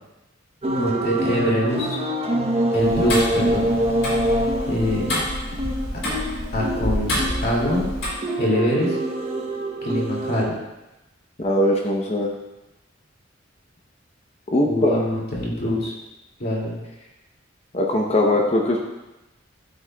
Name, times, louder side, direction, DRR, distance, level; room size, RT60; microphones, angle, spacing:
sound 1, 0.6-10.5, right 1 dB, 30° right, 0.9 m, -25 dB
voice 1, 0.8-2.0 2.7-3.7 4.7-5.2 6.5-7.8 8.4-9.0 9.8-10.5 14.7-15.9 16.4-16.8, equal, 50° left, -3 dB, 2.3 m, -24 dB
Tick-tock, 2.8-8.1, left 1 dB, 85° left, 3.2 m, -28 dB
voice 2, 11.4-12.3 14.5-15.0 17.7-18.9, left 1 dB, 35° left, 0 dB, 0.8 m, -20 dB
12.0 x 7.5 x 2.3 m, 0.99 s
head